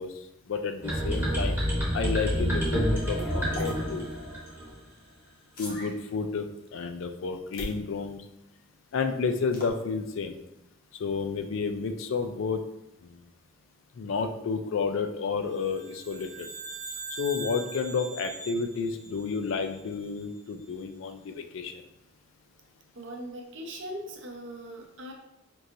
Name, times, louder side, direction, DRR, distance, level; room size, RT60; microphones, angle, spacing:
voice 1, 0.0-1.6 1.9-4.1 5.6-6.5 6.7-8.2 8.9-10.4 11.0-12.6 14.0-16.5 17.2-21.8, left 5 dB, 65° left, 6 dB, 0.4 m, -31 dB
sound 1, 0.8-4.8, equal, 10° right, 0.8 m, -28 dB
sound 2, 3.5-3.7 5.5-5.9 7.5-7.8 9.5-9.7, left 1 dB, 45° left, 0.9 m, -38 dB
sound 3, 15.6-20.1, right 3 dB, 90° right, 0.7 m, -42 dB
voice 2, 22.9-25.1, right 1 dB, 60° right, 2 dB, 0.6 m, -40 dB
4.5 x 2.7 x 2.5 m, 0.86 s
head